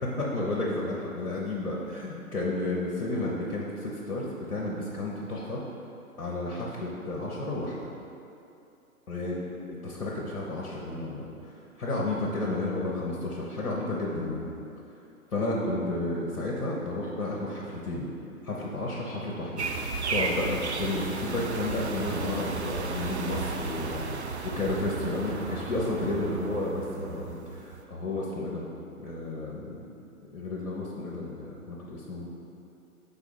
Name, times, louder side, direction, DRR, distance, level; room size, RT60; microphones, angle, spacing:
voice 1, 0.2-5.6 6.2-7.9 9.1-14.5 15.3-18.1 18.4-19.7 20.1-24.1 24.4-28.6 29.0-30.0 30.3-32.2, left 2 dB, 65° left, -4 dB, 1.1 m, -32 dB
sound 1, 19.6-27.8, right 4 dB, 50° right, 0.5 m, -34 dB
4.7 x 4.1 x 5.4 m, 2.7 s
figure-of-eight pair, 130°, 45 cm